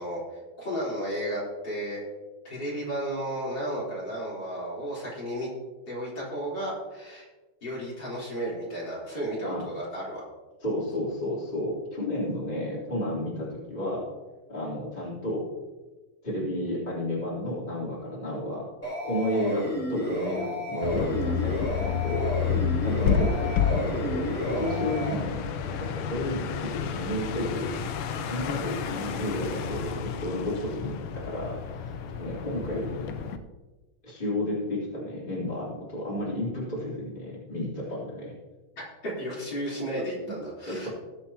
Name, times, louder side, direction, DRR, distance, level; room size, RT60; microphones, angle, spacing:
voice 1, 0.0-2.0 2.4-5.5 5.9-7.3 7.6-10.2 38.8-40.9, right 1 dB, 55° left, -7 dB, 4.5 m, -33 dB
voice 2, 10.6-14.0 14.5-15.5 16.2-18.6 19.0-22.3 22.8-27.8 28.2-33.0 34.0-38.3 40.7-40.9, left 1 dB, 25° left, -7 dB, 3.9 m, -32 dB
sound 1, 18.8-25.1, equal, 5° left, 2.7 m, -32 dB
sound 2, 20.8-33.4, left 7 dB, 85° left, 1.6 m, -30 dB
20.5 x 7.8 x 2.9 m, 1.2 s
omnidirectional pair, 2.3 m